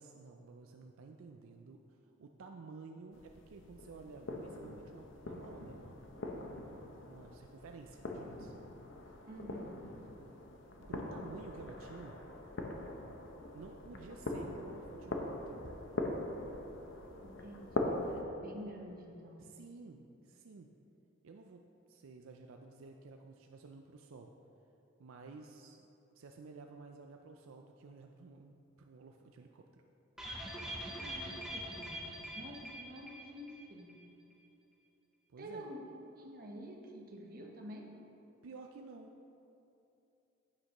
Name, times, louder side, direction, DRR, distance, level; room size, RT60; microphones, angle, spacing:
voice 1, 0.0-6.0 7.0-8.5 10.9-12.2 13.5-15.6 19.4-20.7 21.2-24.3 25.0-25.9 26.1-29.8 35.3-35.7 38.4-39.1, right 4 dB, 75° right, 3 dB, 0.4 m, -52 dB
sound 1, 3.1-18.2, left 2 dB, 60° left, 0.7 m, -42 dB
voice 2, 9.3-9.8 17.2-19.4 30.9-33.9 35.4-35.9 36.2-37.9, equal, 40° right, 0 dB, 1.0 m, -49 dB
sound 2, 30.2-33.6 33.9-34.0 34.3-34.4, equal, 5° right, 0.7 m, -43 dB
9.7 x 8.6 x 3.0 m, 2.8 s
head